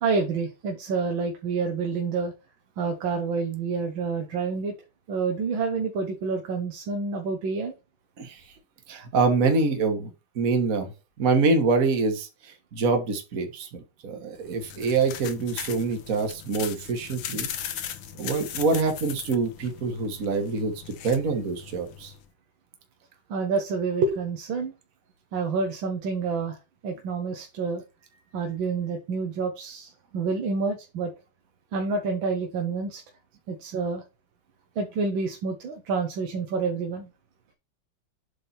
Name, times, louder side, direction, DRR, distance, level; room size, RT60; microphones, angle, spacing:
voice 1, 0.0-2.3 2.8-4.8 5.1-7.7 23.3-24.7 25.3-26.6 26.8-27.8 28.3-31.1 31.7-33.0 33.5-34.0 34.8-37.1, right 4 dB, 75° right, 4 dB, 1.8 m, -28 dB
voice 2, 8.9-10.1 10.4-10.9 11.2-13.7 14.0-17.5 18.2-20.7 21.0-22.1, right 4 dB, 45° right, 4 dB, 1.8 m, -25 dB
sound 1, 14.4-22.3, left 9 dB, 80° left, 1.7 m, -39 dB
8.2 x 3.6 x 4.3 m, 0.28 s
omnidirectional pair, 2.2 m